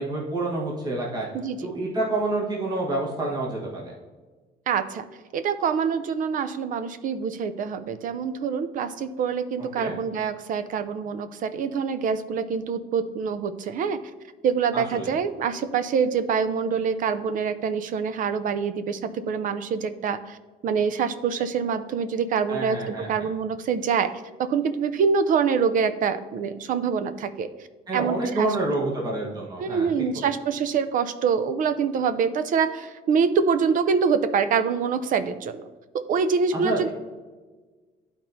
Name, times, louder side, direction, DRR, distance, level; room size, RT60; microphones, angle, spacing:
voice 1, 0.0-1.3 1.6-3.9 9.8-10.0 14.7-15.1 22.5-23.3 27.9-30.3 36.5-36.9, right 2 dB, 25° right, -3 dB, 1.3 m, -28 dB
voice 2, 1.3-1.7 4.7-5.1 5.3-14.0 14.4-20.4 20.6-24.1 24.4-27.5 27.9-28.6 29.6-35.6 35.9-36.9, right 6 dB, 50° right, 12 dB, 0.5 m, -25 dB
12.0 x 4.3 x 2.7 m, 1.3 s
cardioid pair, 135°, 17 cm